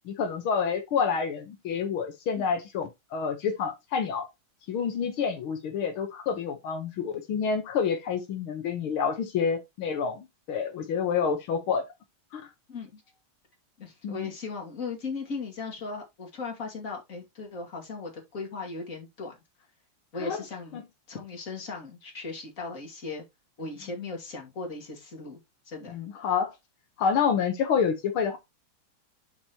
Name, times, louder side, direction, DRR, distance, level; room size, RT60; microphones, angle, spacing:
voice 1, 0.1-4.3 4.7-11.8 12.3-12.4 14.0-14.3 20.2-20.4 20.7-20.8 25.9-26.5 27.0-28.4, left 6 dB, 85° left, 2.0 m, -28 dB
voice 2, 12.7-13.0 13.8-19.4 20.1-20.8 21.1-23.2 23.6-25.4 25.7-26.0, left 4 dB, 40° left, 2.7 m, -37 dB
11.5 x 4.4 x 2.9 m
omnidirectional pair, 2.3 m